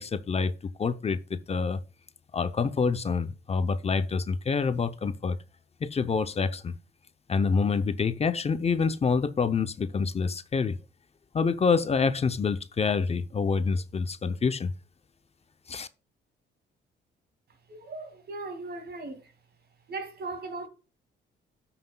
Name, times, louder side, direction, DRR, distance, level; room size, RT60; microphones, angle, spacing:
voice 1, 0.0-1.8 2.3-5.4 5.8-6.7 7.3-10.8 11.3-14.7 15.7-15.9, left 5 dB, 30° left, 0.7 m, -27 dB
voice 2, 17.7-19.3 19.9-20.7, right 3 dB, 55° right, 2.3 m, -38 dB
13.0 x 5.9 x 2.3 m
cardioid pair, 100°, 20 cm